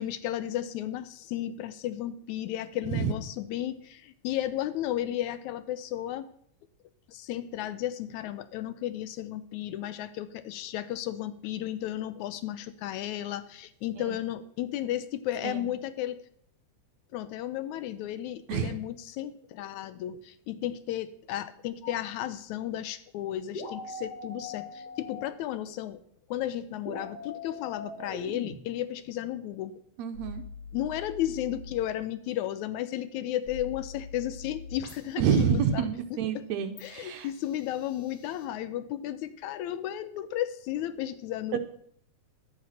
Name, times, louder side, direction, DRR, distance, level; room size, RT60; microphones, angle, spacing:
voice 1, 0.0-6.3 7.1-16.2 17.1-26.0 26.3-29.8 30.7-36.4 36.8-41.6, left 12 dB, 80° left, 13 dB, 1.9 m, -34 dB
sound 1, 21.8-21.9 23.5-25.2 26.8-28.5 30.1-31.8 33.5-35.1 36.8-38.4, left 4 dB, 55° left, 2.9 m, -42 dB
voice 2, 30.0-30.4 35.2-37.3 41.5-41.6, right 7 dB, 70° right, 8 dB, 1.9 m, -28 dB
11.5 x 8.9 x 5.8 m, 0.65 s
omnidirectional pair, 3.5 m